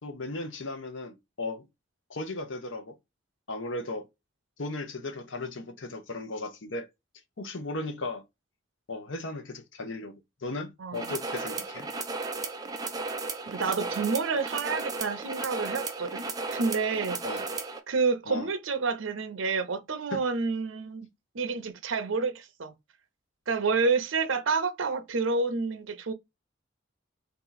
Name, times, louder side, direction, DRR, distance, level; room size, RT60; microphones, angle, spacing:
voice 1, 0.0-1.7 2.1-3.0 3.5-4.1 4.6-6.9 7.4-8.2 8.9-11.9 17.2-17.4 18.3-18.5 20.1-20.2, left 2 dB, 75° left, 0.9 m, -36 dB
voice 2, 10.8-11.1 13.5-17.2 17.9-21.1 21.3-22.7 23.5-26.1, right 4 dB, 85° right, 0.7 m, -29 dB
sound 1, 10.9-17.8, right 3 dB, 20° right, 0.6 m, -35 dB
3.8 x 2.9 x 3.9 m
head